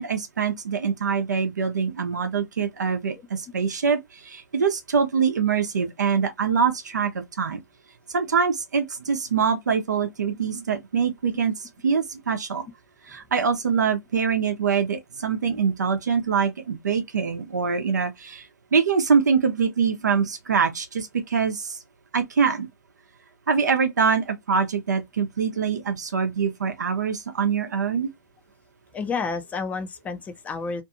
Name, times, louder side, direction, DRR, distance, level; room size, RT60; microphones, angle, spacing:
voice 1, 0.0-7.6 8.1-12.7 13.1-18.5 18.7-21.8 22.1-22.7 23.5-28.1, right 6 dB, 80° right, 0.7 m, -24 dB
voice 2, 28.9-30.8, left 4 dB, 15° left, 0.5 m, -30 dB
2.6 x 2.4 x 2.7 m
hypercardioid pair, 110°, 9 cm